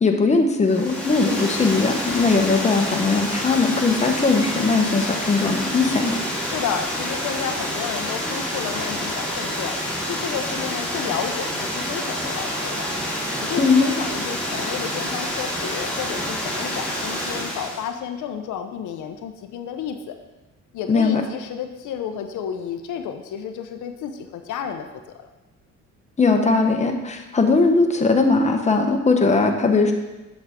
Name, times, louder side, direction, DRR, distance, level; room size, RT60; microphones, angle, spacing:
voice 1, 0.0-6.2 13.6-13.9 20.9-21.2 26.2-29.9, left 3 dB, 25° left, 3 dB, 1.0 m, -19 dB
Water, 0.6-17.9, equal, 5° left, 2.2 m, -28 dB
voice 2, 6.4-9.8 10.0-12.9 13.4-20.1 20.7-25.0, left 8 dB, 80° left, 6 dB, 0.7 m, -31 dB
7.9 x 6.3 x 3.6 m, 1.1 s
cardioid pair, 90°, 30 cm